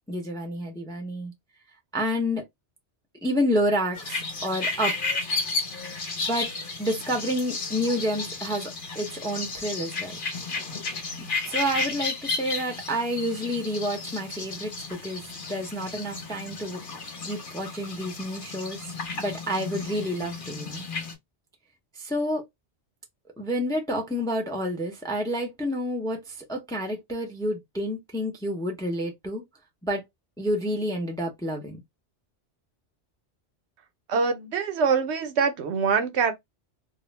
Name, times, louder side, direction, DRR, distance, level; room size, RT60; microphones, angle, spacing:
voice 1, 0.1-1.3 1.9-2.4 3.2-4.9 6.3-6.5 6.8-10.2 11.2-15.2 15.5-16.8 17.2-18.8 19.2-20.8 21.9-22.4 23.4-29.4 29.8-30.0 30.4-31.8, equal, 5° left, 0.4 m, -29 dB
sound 1, 3.9-21.1, left 3 dB, 50° left, 1.0 m, -33 dB
voice 2, 34.1-36.3, right 5 dB, 75° right, 0.9 m, -24 dB
2.4 x 2.1 x 3.1 m
omnidirectional pair, 1.2 m